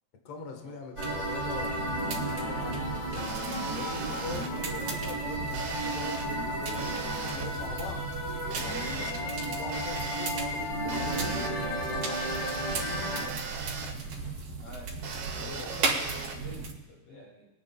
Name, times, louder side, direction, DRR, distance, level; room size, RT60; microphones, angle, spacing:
voice 1, 0.2-3.3 3.7-12.2 14.1-14.5 14.8-15.0 15.4-15.7 17.0-17.3, left 4 dB, 75° left, 3 dB, 1.4 m, -43 dB
sound 1, 1.0-13.2, equal, 30° left, 1.4 m, -34 dB
sound 2, 1.0-16.7, right 4 dB, 55° right, 3.2 m, -36 dB
sound 3, 3.2-4.5 5.5-6.3 6.8-7.5 8.5-9.1 9.7-10.3 10.9-11.5 12.1-13.9 15.0-16.3, right 5 dB, 70° right, 4.1 m, -39 dB
voice 2, 12.9-13.5 14.6-15.0 15.3-17.5, left 1 dB, 60° left, -2 dB, 4.2 m, -48 dB
23.5 x 9.7 x 2.3 m, 1.1 s
omnidirectional pair, 5.1 m